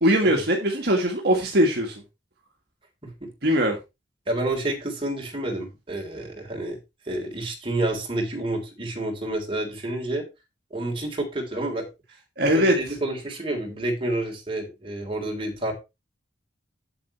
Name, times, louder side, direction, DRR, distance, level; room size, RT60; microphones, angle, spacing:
voice 1, 0.0-2.0 3.4-3.8 12.4-12.8, equal, 55° right, 1 dB, 1.8 m, -21 dB
voice 2, 4.3-6.8 7.1-10.2 10.7-11.9 12.5-15.7, right 1 dB, 30° right, 1 dB, 3.3 m, -29 dB
8.6 x 7.5 x 4.3 m, 0.25 s
head